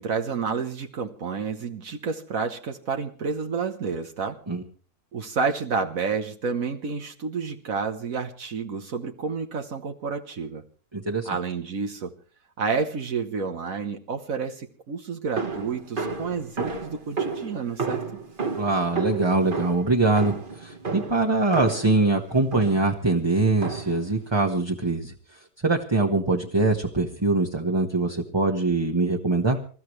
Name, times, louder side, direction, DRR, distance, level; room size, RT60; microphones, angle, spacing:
voice 1, 0.0-4.4 5.1-10.6 11.2-12.1 12.6-18.0, right 5 dB, 65° right, 5 dB, 1.5 m, -30 dB
voice 2, 10.9-11.3 18.6-25.1 25.6-29.6, right 3 dB, 20° right, 2 dB, 1.3 m, -23 dB
sound 1, 15.4-22.0 22.5-23.0 23.6-24.1, right 4 dB, 35° right, 1.6 m, -32 dB
27.5 x 14.0 x 3.2 m, 0.41 s
omnidirectional pair, 1.6 m